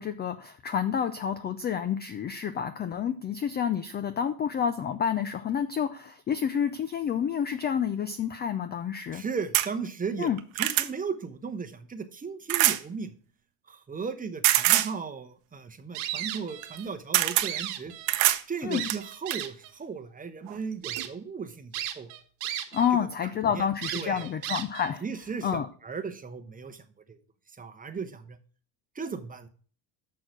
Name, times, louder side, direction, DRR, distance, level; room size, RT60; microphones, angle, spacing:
voice 1, 0.0-9.2 10.2-10.4 18.6-18.8 22.7-25.0 25.4-25.7, left 8 dB, 25° left, 11 dB, 0.3 m, -29 dB
voice 2, 9.1-13.1 13.7-17.9 18.5-22.1 23.5-23.6 23.9-24.3 25.0-27.2 27.6-28.4 28.9-29.5, right 5 dB, 15° right, 8 dB, 0.8 m, -36 dB
sound 1, 9.5-9.7 10.2-10.9 12.5-12.8 14.4-14.9 16.6-16.8 17.1-17.5 18.1-18.4 18.9-19.4 20.5-20.6 21.0-21.1, right 16 dB, 70° right, 0.9 m, -24 dB
Squeeky Toy, 15.9-16.9 17.2-18.3 18.7-19.7 20.3-20.4 20.8-21.1 21.7-22.9 23.2-23.3 23.8-24.9, right 12 dB, 85° right, 1.4 m, -35 dB
6.6 x 6.3 x 5.8 m, 0.42 s
supercardioid pair, 115°, 50 cm